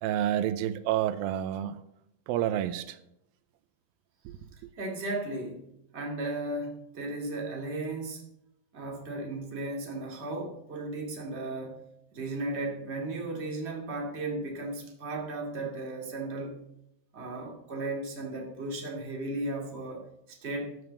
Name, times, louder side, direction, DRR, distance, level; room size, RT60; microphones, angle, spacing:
voice 1, 0.0-1.8 2.3-3.0 4.3-4.4, right 11 dB, 85° right, 13 dB, 2.4 m, -29 dB
voice 2, 4.7-5.7 5.9-8.2 8.7-11.8 12.1-16.6 17.1-20.8, right 2 dB, 20° right, -1 dB, 1.9 m, -35 dB
14.0 x 5.3 x 7.0 m, 0.81 s
omnidirectional pair, 4.1 m